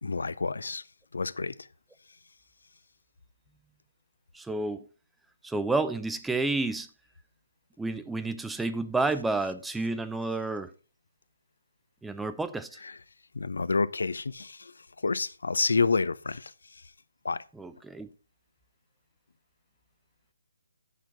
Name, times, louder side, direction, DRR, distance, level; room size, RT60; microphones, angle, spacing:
voice 1, 0.0-0.8 1.1-1.7 13.3-14.7 15.0-16.5 17.2-17.4, left 4 dB, 60° left, 0.5 m, -28 dB
voice 2, 4.3-4.8 5.4-6.9 7.8-10.7 12.0-12.8 17.5-18.1, right 3 dB, 5° right, 0.5 m, -30 dB
8.3 x 6.0 x 5.4 m
figure-of-eight pair, 140°, 0 cm